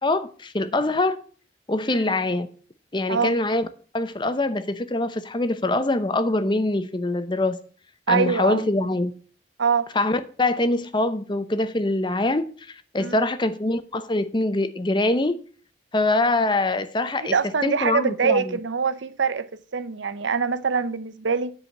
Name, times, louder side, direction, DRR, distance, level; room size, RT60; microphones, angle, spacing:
voice 1, 0.0-1.2 1.7-2.5 2.9-3.7 3.9-7.6 8.1-9.1 9.9-15.4 15.9-17.3 17.6-18.6, left 2 dB, 25° left, 0.7 m, -24 dB
voice 2, 8.1-8.7 9.6-9.9 13.0-13.2 17.2-19.5 19.7-21.5, right 5 dB, 85° right, 0.7 m, -24 dB
10.0 x 5.0 x 7.2 m
head